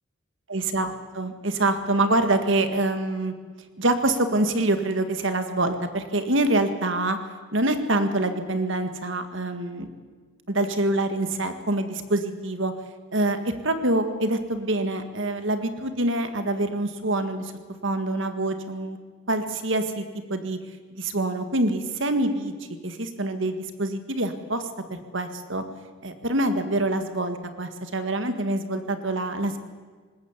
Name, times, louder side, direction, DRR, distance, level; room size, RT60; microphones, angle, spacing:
voice 1, 0.5-3.3 3.8-7.2 7.5-9.9 10.5-12.7 13.1-17.5 17.8-19.0 19.3-20.6 20.9-22.5 22.8-25.6 26.0-29.6, right 2 dB, 60° right, 9 dB, 1.8 m, -25 dB
20.5 x 19.0 x 8.2 m, 1.5 s
head